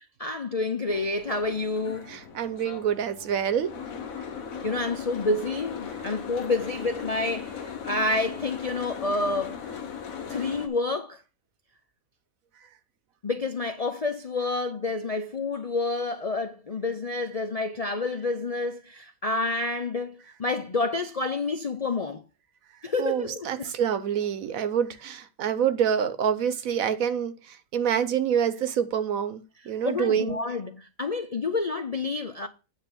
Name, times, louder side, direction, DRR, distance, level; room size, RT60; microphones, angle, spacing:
voice 1, 0.2-2.1 4.6-9.6 10.3-11.2 13.2-22.2 22.8-23.7 29.6-32.5, left 3 dB, 50° left, 0.4 m, -29 dB
Boat Water vehicle, 0.9-10.7, left 7 dB, 85° left, 1.5 m, -38 dB
voice 2, 2.1-3.7 23.0-30.4, right 8 dB, 80° right, 1.3 m, -27 dB
9.0 x 3.9 x 7.0 m
omnidirectional pair, 1.4 m